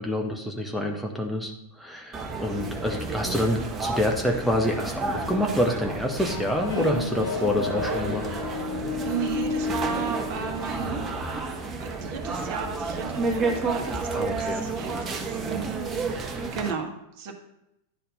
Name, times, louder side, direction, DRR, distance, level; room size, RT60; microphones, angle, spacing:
voice 1, 0.0-8.3 14.1-14.7, left 1 dB, ahead, 1 dB, 1.0 m, -27 dB
sound 1, 2.1-16.7, right 3 dB, 25° right, 1.1 m, -31 dB
sound 2, 6.2-11.4, left 5 dB, 60° left, 0.7 m, -33 dB
voice 2, 9.0-11.1 11.8-17.3, right 7 dB, 50° right, 4 dB, 1.4 m, -35 dB
10.0 x 4.3 x 5.3 m, 0.84 s
figure-of-eight pair, 90°, 0 cm